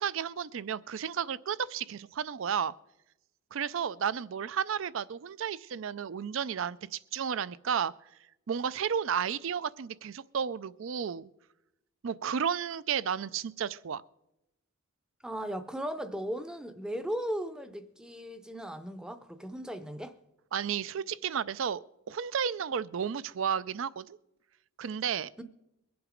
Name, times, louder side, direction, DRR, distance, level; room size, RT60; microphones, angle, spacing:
voice 1, 0.0-2.7 3.5-7.9 8.5-11.3 12.0-14.0 20.5-24.2 24.8-25.3, right 7 dB, 60° right, 0.4 m, -32 dB
voice 2, 15.2-20.1 25.4-25.5, equal, 5° right, 0.6 m, -37 dB
22.5 x 7.9 x 5.1 m
head